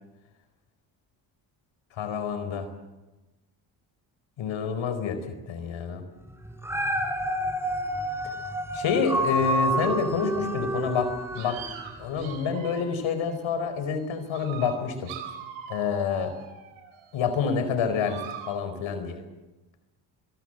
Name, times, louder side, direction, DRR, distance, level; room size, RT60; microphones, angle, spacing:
voice 1, 1.9-2.7 4.4-6.0 8.7-11.6 12.0-15.1 15.7-16.3 17.1-18.2 18.5-19.2, left 6 dB, 75° left, 10 dB, 4.6 m, -28 dB
Dog, 6.5-11.8 12.3-12.4, right 1 dB, 5° right, 4.0 m, -29 dB
sound 1, 8.9-9.0 9.9-10.0 10.9-11.0 11.4-13.1 13.9-14.0 14.3-17.1 17.9-18.5, right 8 dB, 85° right, 4.2 m, -42 dB
24.5 x 22.5 x 7.9 m, 1.1 s
supercardioid pair, 75°, 48 cm